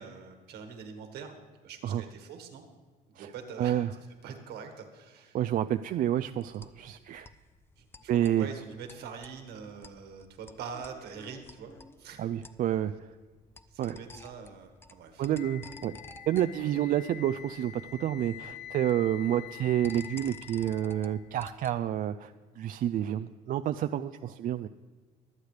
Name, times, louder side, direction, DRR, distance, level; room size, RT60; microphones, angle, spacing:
voice 1, 0.0-1.4 1.6-2.7 3.1-3.8 4.2-5.4 7.8-11.7 12.0-12.2 13.7-15.2, right 6 dB, 75° right, 5 dB, 1.7 m, -44 dB
voice 2, 3.6-3.9 5.3-7.3 8.1-8.5 12.2-13.1 13.8-14.0 15.2-15.9 16.3-24.7, right 11 dB, 55° right, 10 dB, 0.4 m, -29 dB
sound 1, 5.7-21.9, left 2 dB, 15° left, 0.5 m, -53 dB
Wind instrument woodwind instrument, 15.3-21.3, left 12 dB, 80° left, 0.9 m, -46 dB
24.0 x 8.1 x 3.3 m, 1.4 s
cardioid pair, 110°, 17 cm